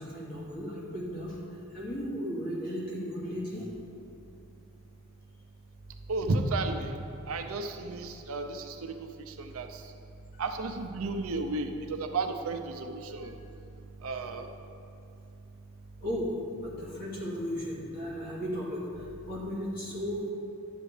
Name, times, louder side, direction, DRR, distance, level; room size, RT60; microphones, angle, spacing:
voice 1, 0.0-1.4 1.7-3.7 13.2-13.3 16.0-18.9 19.2-20.3, equal, 40° left, -6 dB, 2.2 m, -35 dB
voice 2, 6.1-6.9 7.3-8.9 9.4-9.7 10.4-13.3 14.0-14.4, right 3 dB, 70° right, 5 dB, 0.6 m, -32 dB
11.0 x 8.0 x 3.3 m, 2.8 s
head